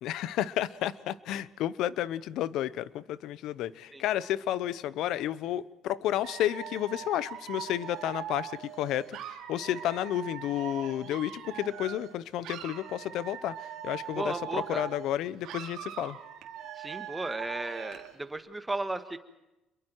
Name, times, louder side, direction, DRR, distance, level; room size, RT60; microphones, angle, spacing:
voice 1, 0.0-13.5 13.8-16.2, left 12 dB, 70° left, 17 dB, 0.8 m, -31 dB
Dog / Alarm, 6.2-12.1 12.4-15.1 15.4-18.2, right 10 dB, 70° right, 2.7 m, -41 dB
voice 2, 14.2-14.9 16.8-19.2, right 2 dB, 10° right, 9 dB, 1.5 m, -35 dB
27.5 x 22.5 x 4.7 m, 0.97 s
cardioid pair, 105°, 0 cm